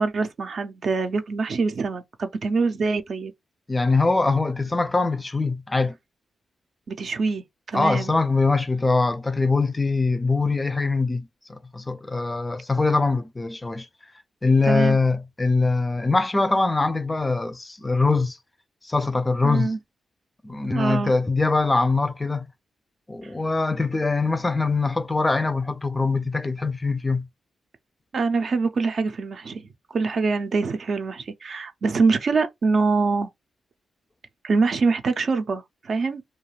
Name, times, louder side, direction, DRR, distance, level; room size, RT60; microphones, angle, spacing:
voice 1, 0.0-3.3 6.9-8.1 14.6-15.0 19.4-19.8 20.7-21.1 28.1-33.3 34.4-36.2, right 4 dB, 60° right, 0.5 m, -24 dB
voice 2, 3.7-6.0 7.7-13.9 14.4-18.4 18.8-19.7 20.4-22.5 23.1-27.3, left 3 dB, 20° left, 0.3 m, -23 dB
2.3 x 2.2 x 3.1 m
cardioid pair, 75°, 0 cm